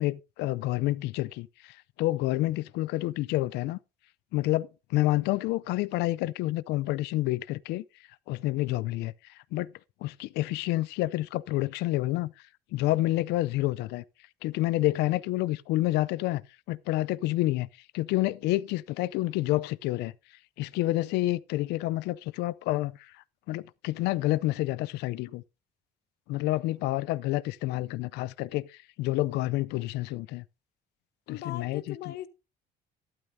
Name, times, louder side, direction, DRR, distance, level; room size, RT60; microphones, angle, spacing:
voice 1, 0.0-3.8 4.3-7.8 8.3-9.7 10.0-12.3 12.7-14.0 14.4-16.4 16.7-17.7 17.9-20.1 20.6-23.1 23.5-25.4 26.3-30.4 31.3-32.1, left 17 dB, 90° left, 0.5 m, -29 dB
voice 2, 31.3-32.3, left 12 dB, 70° left, 1.0 m, -39 dB
12.0 x 12.0 x 2.7 m
cardioid pair, 110°, 17 cm